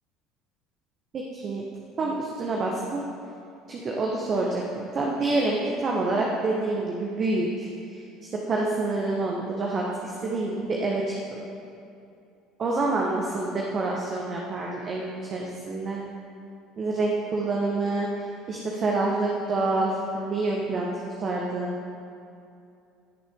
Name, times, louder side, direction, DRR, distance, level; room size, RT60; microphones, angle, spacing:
voice 1, 1.1-1.6 2.0-3.0 3.7-8.0 8.3-11.4 12.6-16.0 16.8-18.1 18.5-20.9 21.2-21.7, right 2 dB, 40° right, -2 dB, 1.2 m, -27 dB
16.5 x 6.7 x 3.7 m, 2.6 s
figure-of-eight pair, 60°, 0 cm